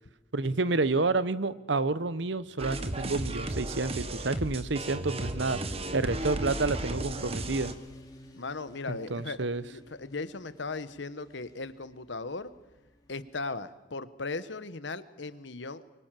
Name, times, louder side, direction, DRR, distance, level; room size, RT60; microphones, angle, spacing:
voice 1, 0.3-5.6 5.9-7.7 8.9-9.6, right 3 dB, 65° right, 16 dB, 0.9 m, -29 dB
Motorcycle, 2.1-13.7, equal, 20° left, 2.8 m, -55 dB
sound 1, 2.6-7.7, right 1 dB, 30° right, 1.3 m, -34 dB
voice 2, 8.3-12.5 13.1-15.8, left 3 dB, 65° left, 14 dB, 1.1 m, -37 dB
24.0 x 23.5 x 7.6 m, 1.2 s
head